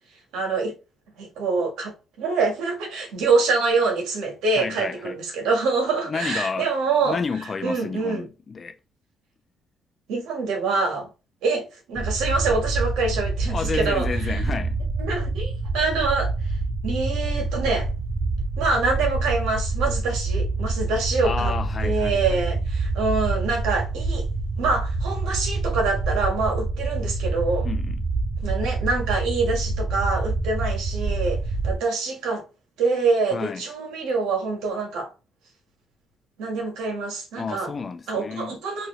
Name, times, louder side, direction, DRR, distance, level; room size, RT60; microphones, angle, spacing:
voice 1, 0.3-0.7 1.2-7.2 7.6-8.3 10.1-11.1 11.4-14.4 15.0-16.3 16.8-17.9 18.6-21.5 21.8-24.3 24.6-27.7 28.4-32.4 32.8-35.1 36.4-37.7 38.1-38.9, right 4 dB, 90° right, 1.3 m, -25 dB
voice 2, 4.5-5.2 6.1-6.7 7.0-8.8 13.5-14.8 21.2-22.4 27.6-28.0 33.3-33.6 37.4-38.6, left 5 dB, 40° left, 0.5 m, -30 dB
sound 1, 12.0-31.8, right 3 dB, 50° right, 0.7 m, -26 dB
2.8 x 2.7 x 3.0 m
cardioid pair, 90°, 0 cm